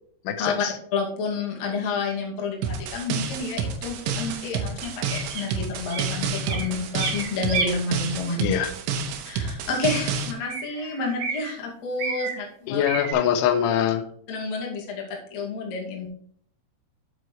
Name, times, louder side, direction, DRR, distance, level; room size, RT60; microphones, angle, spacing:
voice 1, 0.3-0.7 8.4-8.7 12.7-14.0, left 9 dB, 90° left, 8 dB, 3.4 m, -23 dB
voice 2, 0.9-8.5 9.3-12.8 14.3-16.1, left 4 dB, 45° left, -1 dB, 2.6 m, -29 dB
sound 1, 2.6-10.3, right 5 dB, 85° right, 3.5 m, -29 dB
sound 2, 4.8-5.4 5.9-6.1 6.4-7.7 8.9-9.0 9.8-10.0 10.5-11.5 12.0-12.4 12.9-13.1, right 4 dB, 55° right, 3.8 m, -31 dB
8.6 x 7.8 x 3.2 m, 0.63 s
omnidirectional pair, 5.4 m